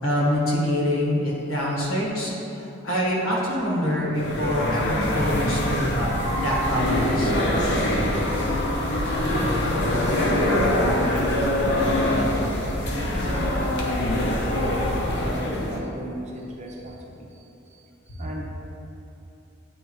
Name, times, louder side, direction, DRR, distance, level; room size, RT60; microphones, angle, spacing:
voice 1, 0.0-6.1 6.4-7.3, equal, 80° left, -4 dB, 1.4 m, -25 dB
sound 1, 4.2-15.8, left 1 dB, 55° left, 0.7 m, -24 dB
voice 2, 9.1-18.4, equal, 35° right, -2 dB, 0.7 m, -37 dB
9.1 x 3.3 x 3.1 m, 2.9 s
head